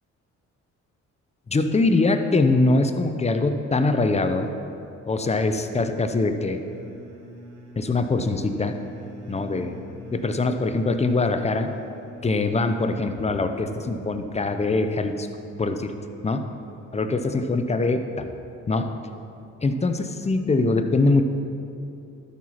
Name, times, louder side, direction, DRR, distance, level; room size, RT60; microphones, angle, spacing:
voice 1, 1.5-4.5 5.1-6.6 7.8-8.7 9.3-9.8 10.1-11.7 12.2-15.3 15.6-15.9 16.2-16.5 16.9-18.3 18.7-18.9 19.6-21.2, left 3 dB, 20° left, 7 dB, 0.7 m, -23 dB
sound 1, 6.4-18.3, right 1 dB, 75° right, 2.0 m, -45 dB
12.0 x 4.8 x 5.8 m, 2.8 s
cardioid pair, 90°, 30 cm